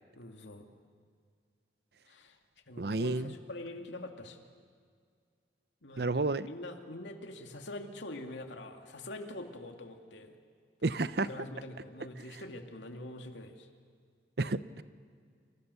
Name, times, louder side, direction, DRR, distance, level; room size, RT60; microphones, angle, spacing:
voice 1, 0.2-0.7 2.1-2.4 2.7-4.4 5.8-10.4 11.2-13.7, left 1 dB, 85° left, 4 dB, 2.5 m, -44 dB
voice 2, 2.8-3.3 6.0-6.5 10.8-11.3 14.4-14.8, right 3 dB, 60° right, 15 dB, 0.7 m, -31 dB
28.0 x 27.5 x 7.0 m, 2.1 s
head